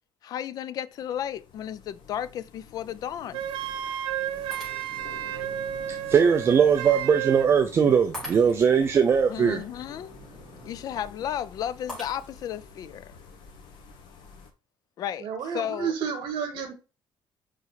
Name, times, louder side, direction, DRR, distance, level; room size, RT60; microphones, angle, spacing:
voice 1, 0.2-3.5 9.3-10.1 10.6-13.2 15.0-15.9, left 10 dB, 50° left, 0.4 m, -33 dB
sound 1, 0.9-14.5, left 6 dB, 70° left, 1.3 m, -48 dB
Wind instrument woodwind instrument, 3.3-7.5, right 12 dB, 85° right, 0.6 m, -32 dB
Shatter, 4.5-5.2 5.8-5.9 8.1-8.9 11.9-12.6, left 1 dB, 5° left, 3.3 m, -41 dB
voice 2, 5.9-9.7, right 7 dB, 30° right, 0.6 m, -20 dB
voice 3, 15.2-16.7, right 7 dB, 60° right, 1.5 m, -31 dB
5.2 x 5.0 x 4.0 m
cardioid pair, 170°, 9 cm